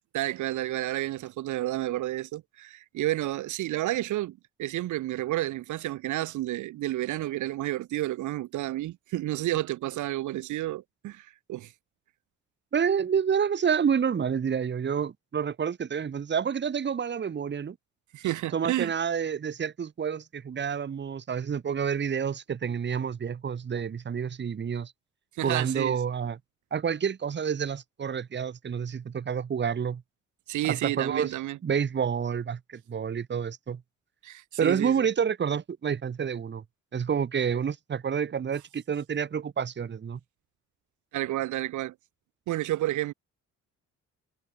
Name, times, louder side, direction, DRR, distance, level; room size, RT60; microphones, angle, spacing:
voice 1, 0.1-11.7 18.1-18.9 25.3-26.0 30.5-31.6 34.2-35.0 41.1-41.9 42.5-43.1, right 15 dB, 75° right, 0.9 m, -31 dB
voice 2, 12.7-17.7 18.5-24.9 25.4-26.4 26.7-30.0 30.6-31.3 31.6-33.8 34.6-36.6 36.9-40.2, right 7 dB, 35° right, 1.3 m, -29 dB
cardioid pair, 90°, 30 cm